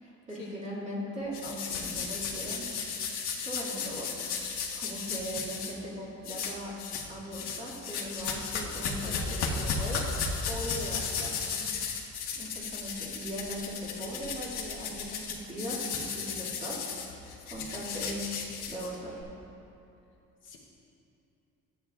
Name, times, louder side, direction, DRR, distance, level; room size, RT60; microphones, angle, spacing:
voice 1, 0.0-2.7 3.4-6.7 7.1-9.2 9.6-10.1 10.5-11.4 12.4-16.8 17.1-19.2, equal, 25° right, -6 dB, 2.1 m, -39 dB
sound 1, 1.3-5.7 6.2-7.1 7.3-19.2, left 5 dB, 85° left, 1.4 m, -35 dB
voice 2, 9.1-9.8 11.5-11.8 20.4-20.6, left 4 dB, 45° left, -2 dB, 0.9 m, -44 dB
14.5 x 9.1 x 2.4 m, 2.8 s
cardioid pair, 180°, 29 cm